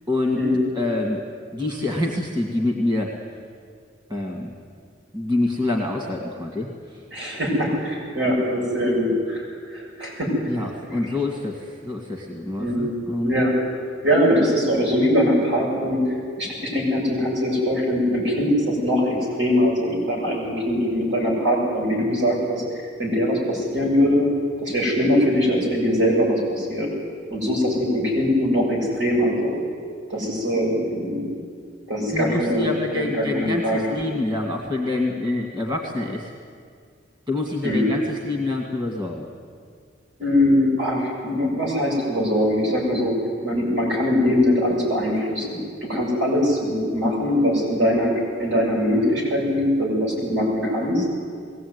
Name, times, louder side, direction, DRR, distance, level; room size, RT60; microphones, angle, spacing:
voice 1, 0.1-0.4 0.7-1.2 1.5-3.1 4.1-4.5 5.1-7.0 10.4-13.4 32.1-36.3 37.3-39.3, left 2 dB, 25° right, 1 dB, 2.1 m, -26 dB
voice 2, 7.1-9.5 9.7-10.3 12.6-12.9 13.2-13.5 14.0-22.6 23.0-24.3 24.6-26.9 27.3-29.6 30.1-31.2 31.9-32.6 32.9-33.9 37.6-37.9 40.2-43.1 43.4-48.1 48.4-51.1, equal, 75° right, -3 dB, 7.5 m, -22 dB
21.5 x 17.0 x 9.6 m, 2.1 s
head